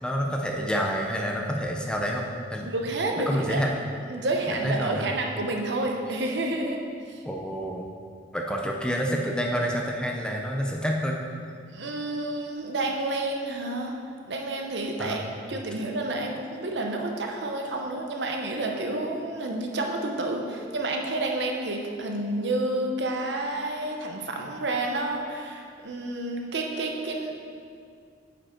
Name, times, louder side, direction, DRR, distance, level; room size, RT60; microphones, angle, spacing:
voice 1, 0.0-2.2 2.5-2.7 3.3-3.7 4.5-5.1 7.3-7.9 8.3-11.2 15.0-15.3, equal, 5° left, 0 dB, 0.6 m, -28 dB
voice 2, 2.6-3.6 4.1-6.8 7.1-7.2 11.7-14.0 14.3-15.2 15.5-27.3, right 2 dB, 70° right, 2 dB, 0.9 m, -29 dB
9.0 x 5.1 x 4.4 m, 2.2 s
head